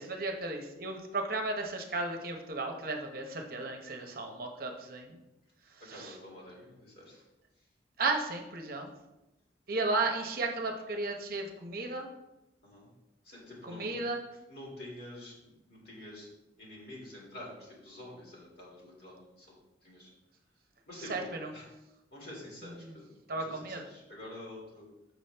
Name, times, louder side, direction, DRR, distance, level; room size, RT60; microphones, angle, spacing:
voice 1, 0.0-5.2 5.9-6.1 8.0-8.9 9.7-12.1 13.6-14.2 21.1-21.5 22.8-22.9 23.3-23.8, right 3 dB, 50° right, 3 dB, 0.8 m, -34 dB
voice 2, 5.8-7.2 12.6-12.9 13.2-14.1 14.5-16.3 16.6-19.5 19.8-20.1 20.8-21.7 22.1-24.9, left 1 dB, 55° left, -4 dB, 2.5 m, -48 dB
6.9 x 6.1 x 3.4 m, 0.97 s
head